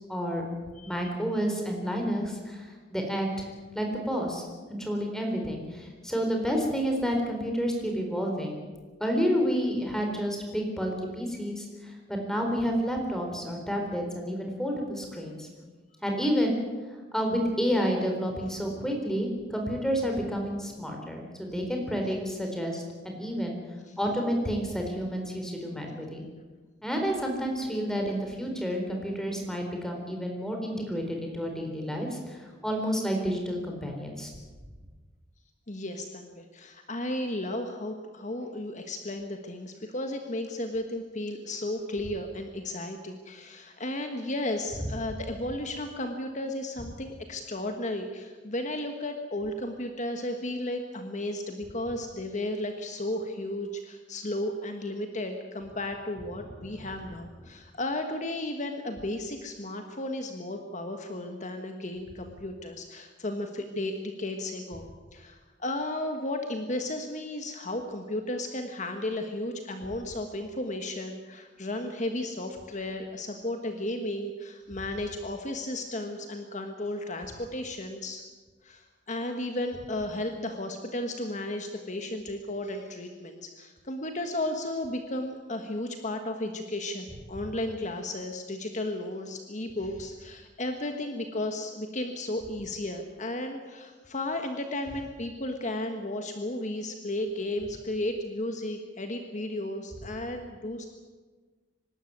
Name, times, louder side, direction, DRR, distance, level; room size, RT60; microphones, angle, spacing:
voice 1, 0.1-0.4 0.8-3.3 3.7-8.6 9.0-15.5 16.0-16.6 17.1-23.6 24.0-26.2 26.8-34.3, equal, 5° left, 1 dB, 4.1 m, -30 dB
voice 2, 35.7-64.8 65.1-78.2 78.6-100.9, left 1 dB, 40° left, 5 dB, 1.5 m, -34 dB
25.0 x 12.5 x 9.4 m, 1.4 s
head